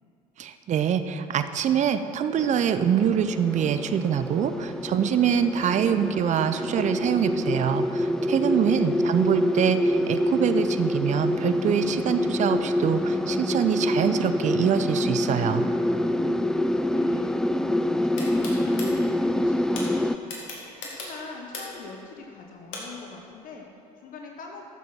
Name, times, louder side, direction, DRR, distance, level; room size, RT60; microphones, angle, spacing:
voice 1, 0.4-15.7, right 8 dB, 40° right, 10 dB, 0.7 m, -24 dB
sound 1, 2.4-20.2, left 1 dB, 5° left, 0.3 m, -26 dB
voice 2, 8.6-9.4 16.3-17.4 17.7-24.7, left 4 dB, 50° left, 1 dB, 1.3 m, -43 dB
sound 2, 18.2-18.9 19.7-19.8 20.3-21.8 22.7-22.8, left 4 dB, 70° left, 2.4 m, -36 dB
12.5 x 7.5 x 5.8 m, 2.6 s
hypercardioid pair, 60°, 18 cm